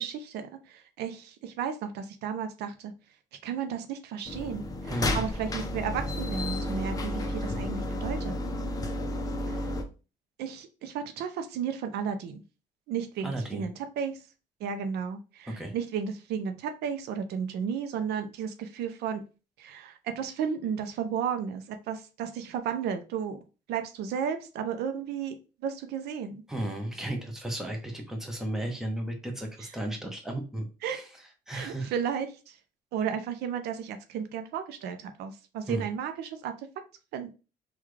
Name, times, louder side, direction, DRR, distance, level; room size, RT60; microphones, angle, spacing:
voice 1, 0.0-2.9 3.4-8.3 9.5-9.6 10.4-12.4 12.9-14.2 14.6-19.2 19.6-23.4 23.7-25.3 25.6-26.4 29.6-29.7 30.8-31.1 31.5-32.6 32.9-36.5 37.1-37.3, right 7 dB, 75° right, 8 dB, 0.5 m, -33 dB
sound 1, 4.2-9.8, left 1 dB, 20° left, 0.5 m, -32 dB
voice 2, 4.9-5.2 13.2-13.7 15.6-15.7 26.5-31.1 31.5-31.9 35.7-35.8, right 1 dB, 5° right, 2 dB, 0.8 m, -34 dB
3.5 x 2.3 x 3.1 m, 0.33 s
cardioid pair, 110°, 17 cm